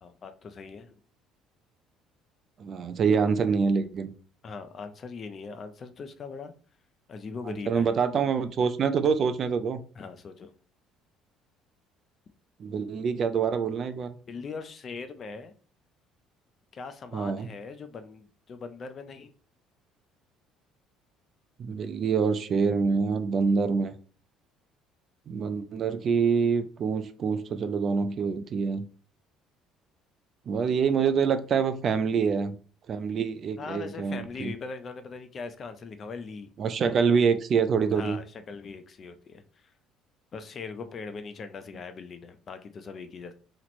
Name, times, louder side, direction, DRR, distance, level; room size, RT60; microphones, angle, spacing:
voice 1, 0.0-0.9 4.4-6.5 7.1-7.9 10.0-10.5 14.3-15.5 16.7-19.3 33.6-36.5 37.9-39.5 40.3-43.3, left 4 dB, 35° left, 0.4 m, -40 dB
voice 2, 2.6-4.1 7.5-9.8 12.6-14.1 17.1-17.5 21.6-23.9 25.3-28.9 30.5-32.5 32.9-34.5 36.6-38.2, right 5 dB, 40° right, 0.3 m, -26 dB
2.9 x 2.0 x 4.1 m
cardioid pair, 130°, 0 cm